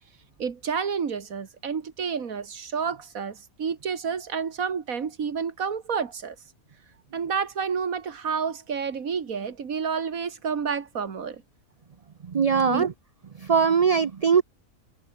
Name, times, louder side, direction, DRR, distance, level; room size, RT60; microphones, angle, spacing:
voice 1, 0.4-6.4 7.1-11.4 12.7-12.9, right 6 dB, 75° right, 2.1 m, -30 dB
voice 2, 12.2-12.9 13.4-14.4, right 6 dB, 40° right, 0.5 m, -21 dB
omnidirectional pair, 1.5 m